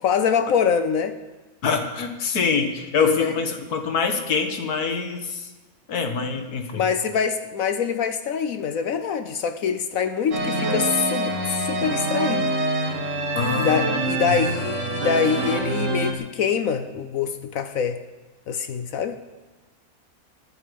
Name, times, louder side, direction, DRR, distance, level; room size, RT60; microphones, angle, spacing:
voice 1, 0.0-1.2 3.0-3.3 6.7-12.5 13.5-18.0 18.5-19.2, left 7 dB, 70° left, 10 dB, 1.1 m, -24 dB
voice 2, 1.6-5.5 5.9-6.8 13.4-14.1, left 5 dB, 90° left, 6 dB, 1.9 m, -25 dB
sound 1, 10.3-16.1, right 2 dB, 55° right, 2.1 m, -25 dB
21.5 x 8.6 x 5.3 m, 1.2 s
omnidirectional pair, 1.6 m